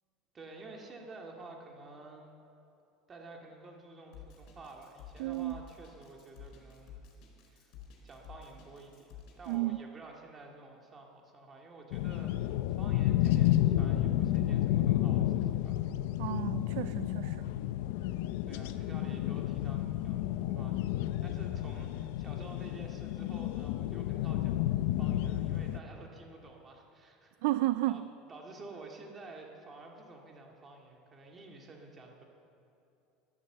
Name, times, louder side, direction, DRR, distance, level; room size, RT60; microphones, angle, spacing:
voice 1, 0.3-2.3 3.1-7.1 7.5-7.7 8.0-15.8 18.4-24.6 24.9-27.3 27.9-28.0 28.3-32.2, right 3 dB, 25° right, 1 dB, 2.1 m, -51 dB
Drum kit, 4.1-9.5, left 7 dB, 55° left, 4.0 m, -52 dB
voice 2, 5.2-5.6 9.5-9.8 16.2-17.5 27.4-28.0, right 17 dB, 75° right, 14 dB, 0.3 m, -32 dB
sound 1, 11.9-25.8, left 13 dB, 80° left, 0.5 m, -31 dB
12.5 x 12.0 x 7.8 m, 2.7 s
supercardioid pair, 140°, 0 cm